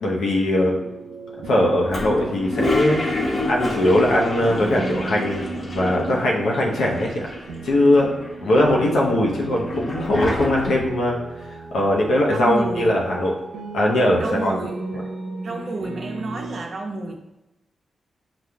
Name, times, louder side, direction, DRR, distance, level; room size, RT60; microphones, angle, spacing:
voice 1, 0.0-0.7 1.5-7.3 7.6-8.1 8.4-11.2 11.7-13.3 13.7-14.6, left 1 dB, 80° left, -2 dB, 0.9 m, -20 dB
sound 1, 0.7-16.6, right 3 dB, 90° right, 0.6 m, -36 dB
Toilet flush, 1.9-6.3 6.5-6.6 6.8-7.7 8.2-11.0, left 2 dB, 40° left, 1.0 m, -27 dB
voice 2, 12.3-12.9 14.2-15.0 15.4-17.2, right 3 dB, 55° right, 3 dB, 0.7 m, -30 dB
6.0 x 2.5 x 3.5 m, 0.99 s
supercardioid pair, 40°, 0 cm